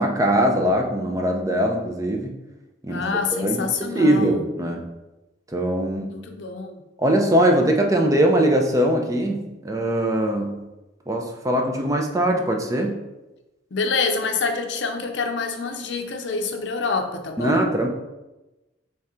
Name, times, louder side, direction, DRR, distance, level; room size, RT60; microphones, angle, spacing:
voice 1, 0.0-2.4 2.8-3.0 3.3-4.8 5.5-6.1 7.0-10.6 11.1-13.0 17.4-17.9, right 1 dB, 20° right, 2 dB, 0.5 m, -21 dB
voice 2, 2.9-4.5 6.0-6.8 13.7-17.7, left 4 dB, 75° left, 5 dB, 0.5 m, -26 dB
3.7 x 3.3 x 4.3 m, 1.0 s
head